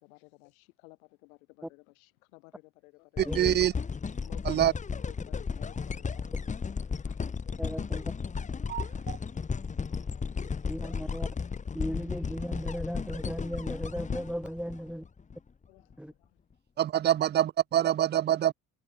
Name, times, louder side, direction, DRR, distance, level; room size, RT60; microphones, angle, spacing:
voice 1, 0.0-3.6 4.2-4.7 5.1-8.1 9.9-12.4 14.1-14.2 15.7-16.4, left 25 dB, 70° left, 6.7 m, -58 dB
sound 1, 3.2-15.4 15.9-16.0, left 5 dB, 15° left, 0.7 m, -34 dB
voice 2, 3.2-3.7 4.5-4.7 8.7-9.2 16.8-18.5, right 11 dB, 25° right, 0.4 m, -25 dB
voice 3, 7.6-8.1 10.7-11.3 11.7-15.0 16.0-16.1, equal, ahead, 1.6 m, -36 dB
figure-of-eight pair, 45°, 43 cm